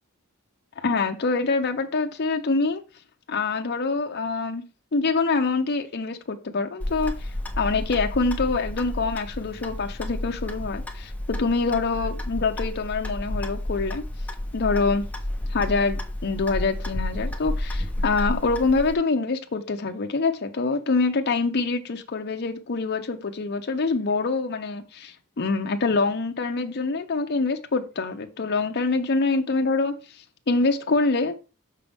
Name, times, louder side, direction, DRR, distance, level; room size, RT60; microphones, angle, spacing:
voice 1, 0.8-2.8 3.3-4.6 4.9-7.3 7.6-14.0 14.5-15.0 15.5-30.0 30.5-31.4, left 3 dB, 50° left, 0.7 m, -25 dB
Clock, 6.8-18.9, left 1 dB, 5° left, 0.9 m, -31 dB
6.2 x 5.5 x 3.4 m
head